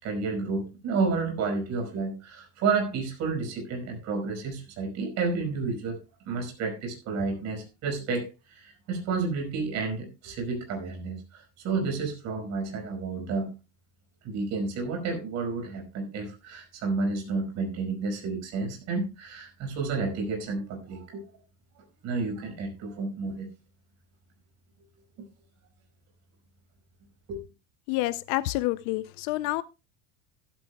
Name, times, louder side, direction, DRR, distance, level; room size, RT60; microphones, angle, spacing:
voice 1, 0.0-6.0 6.3-13.5 14.2-21.2 22.0-23.5 27.3-27.4, right 4 dB, 40° right, 5.3 m, -31 dB
voice 2, 27.9-29.6, left 18 dB, 50° left, 0.5 m, -28 dB
15.0 x 13.5 x 2.2 m
cardioid pair, 175°, 43 cm